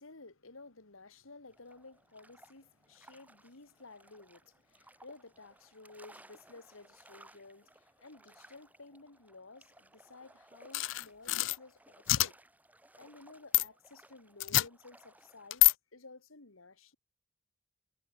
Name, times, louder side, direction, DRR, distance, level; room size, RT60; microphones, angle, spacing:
voice 1, 0.0-12.4 13.0-17.0, left 3 dB, 80° left, 2.3 m, -54 dB
sound 1, 1.5-15.5, right 1 dB, 10° right, 3.4 m, -61 dB
sound 2, 10.7-11.6 12.1-12.3 13.5-13.7 14.4-14.7 15.5-15.7, left 19 dB, 65° left, 0.4 m, -25 dB
head